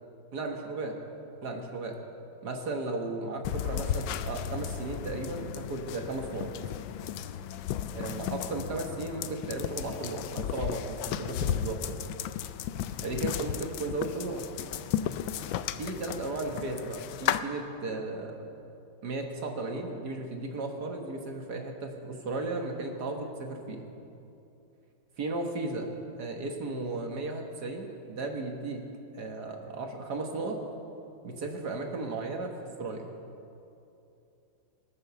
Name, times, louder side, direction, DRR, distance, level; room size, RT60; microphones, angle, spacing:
voice 1, 0.3-0.9 1.4-1.9 2.4-6.5 7.9-12.1 13.0-14.4 15.8-18.4 19.0-23.9 25.2-25.9 26.2-28.8 29.1-30.6 31.2-33.1, right 2 dB, 50° right, 2 dB, 1.8 m, -35 dB
sound 1, 3.4-17.4, left 10 dB, 75° left, 1.2 m, -34 dB
23.5 x 8.1 x 6.8 m, 2.8 s
omnidirectional pair, 2.3 m